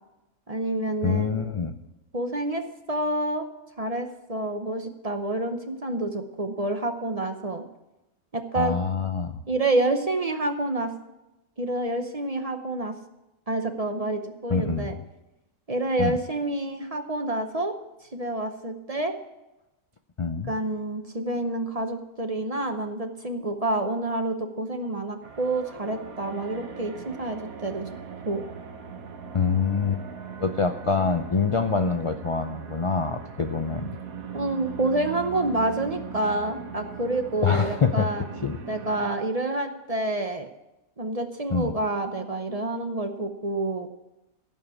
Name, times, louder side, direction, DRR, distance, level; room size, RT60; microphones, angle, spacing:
voice 1, 0.5-1.4 2.1-3.5 3.8-7.6 8.3-8.8 9.5-10.9 11.6-12.9 13.5-15.0 15.7-17.8 18.1-19.1 20.4-27.9 28.3-28.4 34.3-38.3 38.7-40.5 41.0-43.9, right 2 dB, 35° right, 6 dB, 0.8 m, -28 dB
voice 2, 1.0-1.7 8.5-9.4 14.5-14.9 16.0-16.2 20.2-20.5 29.3-30.0 30.4-33.9 37.4-38.1 38.4-38.6 41.5-41.7, left 5 dB, 55° left, 7 dB, 0.3 m, -25 dB
sound 1, 25.2-39.1, right 6 dB, 80° right, 1.5 m, -40 dB
16.0 x 5.6 x 8.3 m, 0.96 s
omnidirectional pair, 1.5 m